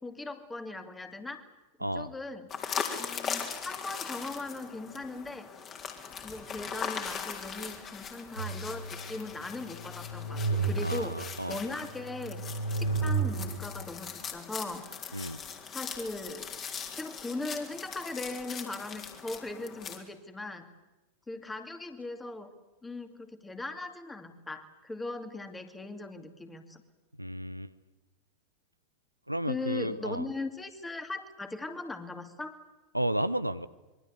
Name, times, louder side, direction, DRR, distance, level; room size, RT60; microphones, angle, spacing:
voice 1, 0.0-1.4 1.9-2.5 3.0-5.5 6.2-11.2 11.5-12.4 12.8-14.9 15.7-16.5 17.0-20.7 21.3-22.5 22.8-26.8 29.4-32.6, left 2 dB, 10° left, 8 dB, 2.6 m, -39 dB
voice 2, 1.8-2.1 10.8-11.6 15.1-15.4 27.2-27.7 29.3-30.3 32.9-33.7, right 1 dB, 90° right, 13 dB, 0.8 m, -32 dB
sound 1, 2.5-20.0, left 6 dB, 30° left, 3.8 m, -40 dB
sound 2, 8.4-9.2 9.7-11.3 11.9-13.8, right 4 dB, 80° left, 2.8 m, -32 dB
26.0 x 23.0 x 8.4 m, 1.1 s
figure-of-eight pair, 90°, 0 cm